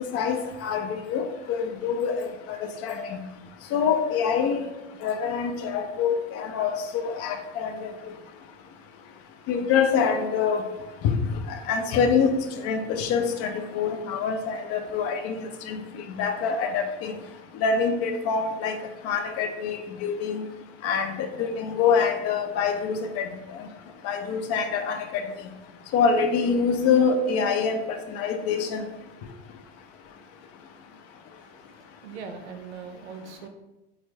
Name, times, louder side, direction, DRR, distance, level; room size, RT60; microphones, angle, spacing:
voice 1, 0.1-3.2 3.7-4.6 5.0-7.9 9.5-10.6 11.0-11.1 11.5-12.4 12.6-17.1 17.5-18.8 19.0-20.4 20.8-23.7 24.0-25.3 25.9-28.8, left 6 dB, 45° left, 6 dB, 0.5 m, -25 dB
voice 2, 31.6-33.5, right 6 dB, 85° right, 6 dB, 0.5 m, -41 dB
4.3 x 2.0 x 2.7 m, 0.99 s
hypercardioid pair, 85°, 33 cm